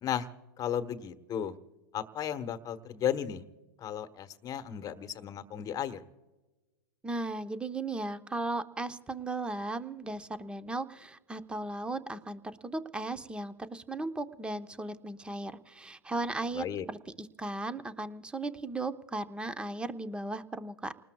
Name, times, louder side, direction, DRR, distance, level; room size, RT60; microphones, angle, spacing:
voice 1, 0.6-1.5 1.9-3.4 3.8-6.0 16.5-16.8, left 9 dB, 30° left, 10 dB, 1.2 m, -34 dB
voice 2, 7.0-20.9, right 2 dB, 10° right, 10 dB, 0.8 m, -36 dB
29.5 x 19.5 x 2.3 m, 1.2 s
hypercardioid pair, 115°, 13 cm